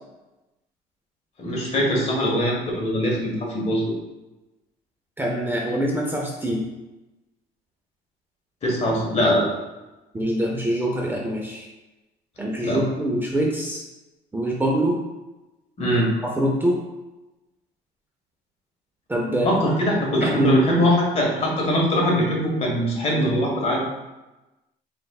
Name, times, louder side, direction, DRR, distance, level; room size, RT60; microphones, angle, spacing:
voice 1, 1.4-3.8 8.6-9.6 12.6-12.8 15.8-16.1 19.4-23.8, equal, 40° left, -2 dB, 1.3 m, -22 dB
voice 2, 5.2-6.6 10.1-11.7 12.4-13.8 14.3-15.0 16.4-16.8 19.1-19.5 20.2-20.6, right 1 dB, 10° right, -2 dB, 0.5 m, -24 dB
4.3 x 3.4 x 2.3 m, 1.0 s
cardioid pair, 110°, 17 cm